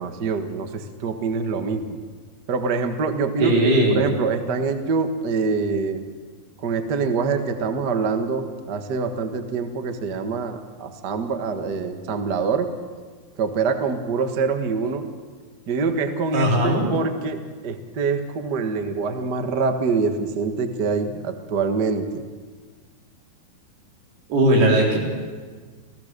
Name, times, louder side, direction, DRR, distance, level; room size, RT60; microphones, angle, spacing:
voice 1, 0.0-2.0 2.5-6.0 6.6-12.7 13.4-15.1 15.7-22.2, right 4 dB, 65° right, 7 dB, 1.0 m, -25 dB
voice 2, 3.4-4.0 16.3-16.8 24.3-25.0, right 1 dB, 80° right, -1 dB, 6.0 m, -18 dB
29.0 x 16.5 x 6.8 m, 1.5 s
omnidirectional pair, 4.4 m